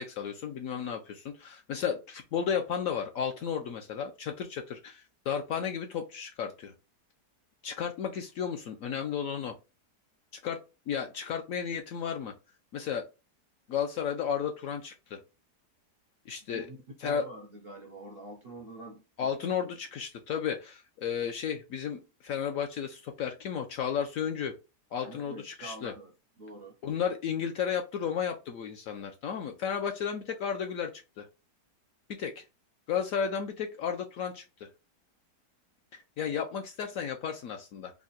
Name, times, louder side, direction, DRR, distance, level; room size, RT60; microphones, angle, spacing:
voice 1, 0.0-6.7 7.6-9.5 10.4-10.6 10.9-12.3 12.7-13.0 13.7-15.2 16.3-16.7 17.0-17.2 19.2-24.5 24.9-25.9 26.8-31.3 32.2-32.4 32.9-34.7 35.9-37.9, left 7 dB, 70° left, 0.8 m, -33 dB
voice 2, 17.0-19.7 25.0-26.1 26.4-26.8, right 2 dB, 55° right, 0.6 m, -46 dB
3.6 x 2.2 x 3.9 m
omnidirectional pair, 1.8 m